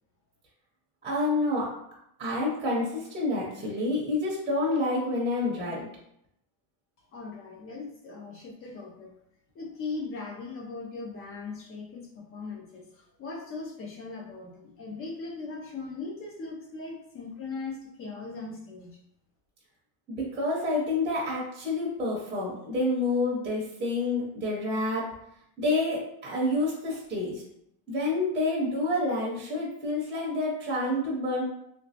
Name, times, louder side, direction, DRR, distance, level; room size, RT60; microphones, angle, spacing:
voice 1, 1.0-1.7 2.2-5.9 20.2-25.0 25.6-27.4 27.9-31.4, left 2 dB, 10° right, -5 dB, 0.6 m, -28 dB
voice 2, 7.1-9.1 9.5-19.0, left 4 dB, 30° left, 0 dB, 0.4 m, -39 dB
3.2 x 2.9 x 2.8 m, 0.77 s
cardioid pair, 165°, 50 cm